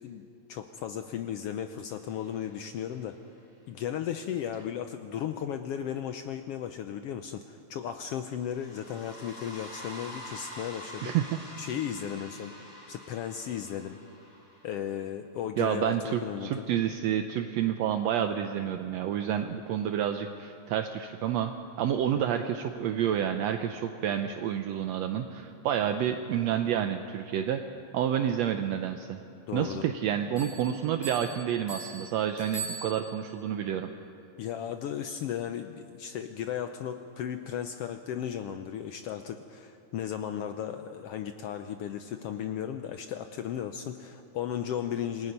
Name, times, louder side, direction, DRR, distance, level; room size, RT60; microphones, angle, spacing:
voice 1, 0.0-3.2 3.7-11.1 11.6-14.0 14.6-16.7 22.0-22.2 29.5-29.9 34.4-45.3, left 9 dB, 75° left, 8 dB, 1.4 m, -35 dB
sound 1, 2.0-3.1 8.3-15.1, equal, 5° right, 4.8 m, -46 dB
voice 2, 15.6-21.5 21.8-27.6 27.9-29.2 29.5-33.9, right 9 dB, 75° right, 6 dB, 1.8 m, -29 dB
Bell, 30.4-33.4, right 4 dB, 60° left, 7.3 m, -41 dB
27.5 x 19.0 x 5.4 m, 2.7 s
omnidirectional pair, 3.3 m